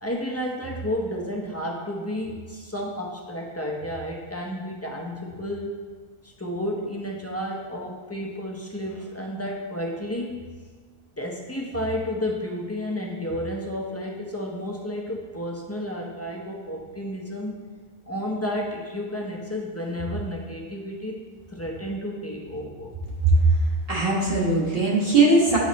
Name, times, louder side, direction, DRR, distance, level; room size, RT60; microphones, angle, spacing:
voice 1, 0.0-5.7 6.2-10.6 11.2-17.6 18.1-21.3 21.5-22.9, equal, 15° left, -2 dB, 0.7 m, -31 dB
voice 2, 23.9-25.6, right 2 dB, 70° right, -6 dB, 1.8 m, -19 dB
8.8 x 3.1 x 4.1 m, 1.5 s
omnidirectional pair, 1.1 m